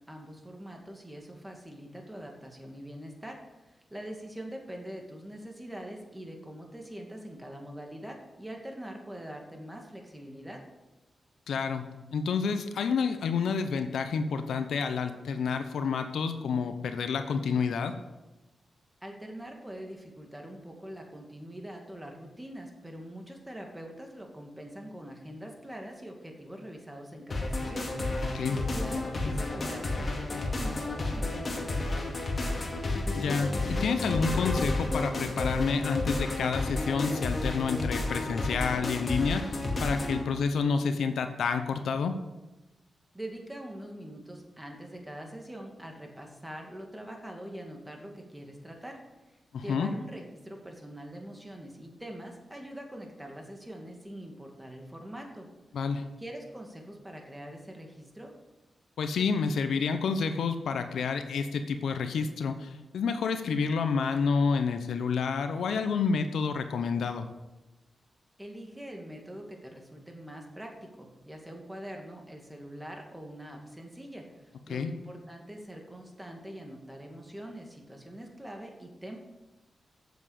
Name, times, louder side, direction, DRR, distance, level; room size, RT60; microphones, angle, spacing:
voice 1, 0.1-3.4 3.7-10.6 19.0-32.7 43.1-55.5 56.2-58.3 68.4-79.2, right 1 dB, 10° right, 2 dB, 2.3 m, -44 dB
voice 2, 11.5-11.8 12.1-17.9 28.3-28.6 33.1-42.1 49.5-49.9 55.7-56.1 59.0-67.3 74.7-74.9, left 5 dB, 85° left, 8 dB, 0.8 m, -29 dB
sound 1, 27.3-40.2, left 2 dB, 45° left, 2.2 m, -31 dB
8.1 x 7.3 x 6.5 m, 1.1 s
cardioid pair, 65°, 0 cm